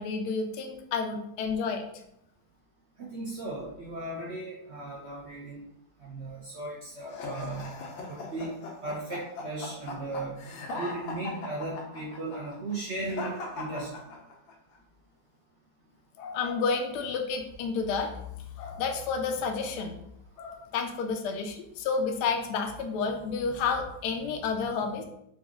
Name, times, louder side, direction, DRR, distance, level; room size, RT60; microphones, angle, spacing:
voice 1, 0.0-1.8 16.2-18.1 18.6-20.0 20.4-25.0, left 5 dB, 75° left, 4 dB, 1.0 m, -30 dB
voice 2, 3.0-5.6 6.0-7.7 8.1-8.5 8.8-10.4 10.8-13.9, right 2 dB, 65° right, -6 dB, 0.6 m, -36 dB
sound 1, 7.1-14.5, left 2 dB, 90° left, 1.5 m, -39 dB
4.0 x 2.3 x 3.6 m, 0.77 s
omnidirectional pair, 2.1 m